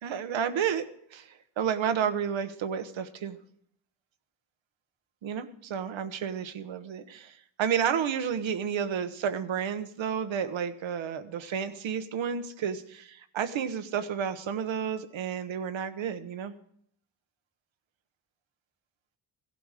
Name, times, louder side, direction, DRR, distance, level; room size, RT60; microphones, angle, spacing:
voice 1, 0.0-3.4 5.2-16.5, right 8 dB, 75° right, 10 dB, 1.2 m, -31 dB
17.0 x 12.0 x 5.0 m, 0.67 s
cardioid pair, 115°, 47 cm